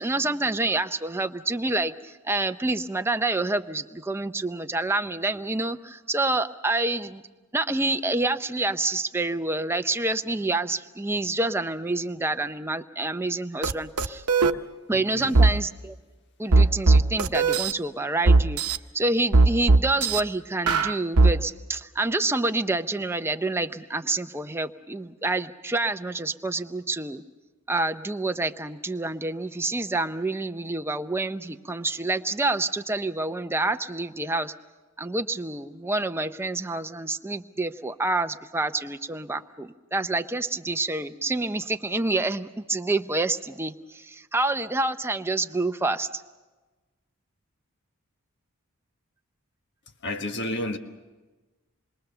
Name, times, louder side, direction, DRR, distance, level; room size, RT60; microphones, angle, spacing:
voice 1, 0.0-7.2 7.5-14.2 14.9-15.9 16.4-18.6 18.9-27.2 27.7-34.5 35.0-46.2, right 2 dB, 10° right, 8 dB, 0.7 m, -27 dB
sound 1, 13.6-13.7 14.0-14.5 15.3-15.5 16.5-17.7 18.3-18.8 19.3-20.2 20.7-21.3, right 3 dB, 90° right, 0.8 m, -18 dB
voice 2, 14.9-15.5 50.0-50.8, left 1 dB, 55° left, 6 dB, 1.5 m, -31 dB
27.0 x 22.0 x 6.8 m, 1.2 s
head